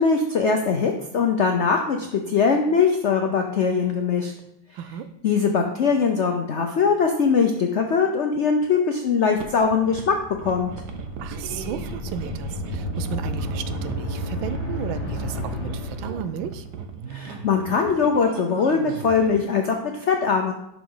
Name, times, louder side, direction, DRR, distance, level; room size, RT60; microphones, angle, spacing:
voice 1, 0.0-4.3 5.2-10.1 10.4-10.7 17.1-20.5, left 5 dB, 75° left, 3 dB, 0.6 m, -21 dB
voice 2, 4.7-5.1 11.2-16.7, right 9 dB, 90° right, 12 dB, 1.4 m, -34 dB
sound 1, 9.4-19.4, right 6 dB, 65° right, 1.2 m, -38 dB
sound 2, 9.7-16.7, left 1 dB, 15° left, 1.5 m, -32 dB
11.0 x 4.9 x 3.9 m, 0.79 s
omnidirectional pair, 2.1 m